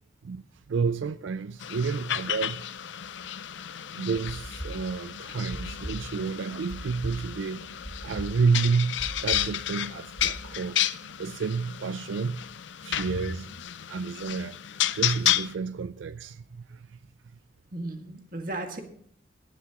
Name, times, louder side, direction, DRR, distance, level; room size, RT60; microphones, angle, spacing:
voice 1, 0.7-2.6 3.9-7.7 8.0-10.8 11.2-12.4 12.8-13.5 13.9-14.6 15.0-17.0, right 5 dB, 85° right, 0.4 m, -30 dB
sound 1, 1.6-15.5, left 12 dB, 80° left, 0.5 m, -32 dB
sound 2, 4.2-10.3, equal, 15° left, 1.8 m, -39 dB
voice 2, 17.7-18.8, right 1 dB, 45° right, 1.9 m, -36 dB
17.5 x 12.0 x 3.0 m
head